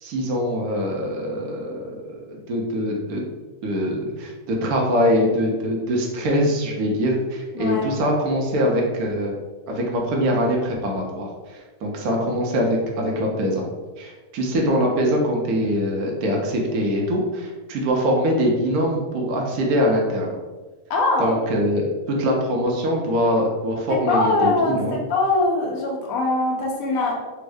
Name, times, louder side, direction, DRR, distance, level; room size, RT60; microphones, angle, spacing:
voice 1, 0.0-3.2 3.6-9.3 9.7-13.6 14.0-20.4 21.2-25.0, equal, 75° right, -1 dB, 1.1 m, -23 dB
voice 2, 7.5-7.9 20.9-21.4 24.1-27.1, left 2 dB, 70° left, -1 dB, 1.1 m, -22 dB
3.5 x 2.0 x 3.3 m, 1.3 s
omnidirectional pair, 1.7 m